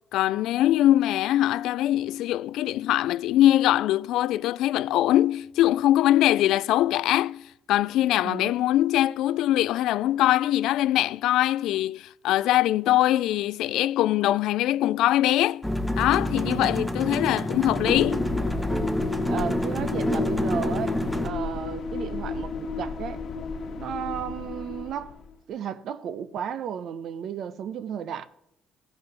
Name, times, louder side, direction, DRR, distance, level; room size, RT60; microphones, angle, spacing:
voice 1, 0.1-15.7 16.0-18.3, left 14 dB, 85° left, 0.3 m, -22 dB
voice 2, 8.2-8.5 16.3-16.7 19.3-21.0 21.2-23.2 23.8-25.2 25.5-28.3, right 8 dB, 65° right, 0.8 m, -33 dB
sound 1, 15.6-21.3, equal, 5° right, 1.0 m, -28 dB
sound 2, 17.5-25.3, left 4 dB, 60° left, 1.1 m, -33 dB
15.5 x 6.3 x 6.0 m
cardioid pair, 110°, 0 cm